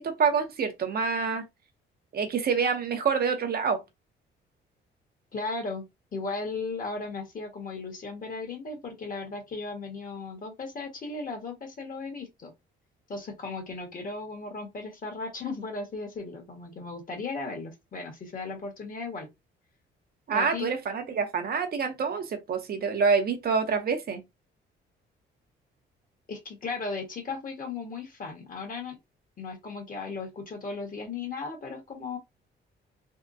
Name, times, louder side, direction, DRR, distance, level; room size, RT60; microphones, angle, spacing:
voice 1, 0.0-1.4 2.1-3.8 20.3-24.2, right 5 dB, 50° right, 0.7 m, -27 dB
voice 2, 5.3-5.9 6.1-12.5 13.1-19.3 20.3-20.7 26.3-29.0 29.4-32.2, left 3 dB, 45° left, 1.5 m, -36 dB
3.5 x 2.2 x 2.6 m
cardioid pair, 90°, 20 cm